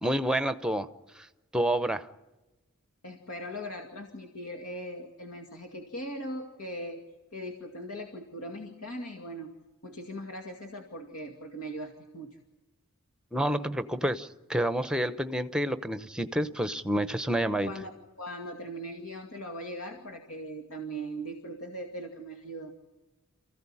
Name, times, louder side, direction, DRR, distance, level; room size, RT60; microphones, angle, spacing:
voice 1, 0.0-0.9 1.2-1.3 1.5-2.1 13.3-17.7, right 1 dB, 5° right, 12 dB, 0.8 m, -29 dB
voice 2, 3.0-7.0 7.3-9.5 9.8-12.4 17.6-17.9 18.2-22.7, equal, 80° left, 3 dB, 2.3 m, -39 dB
28.0 x 15.0 x 9.9 m, 1.1 s
head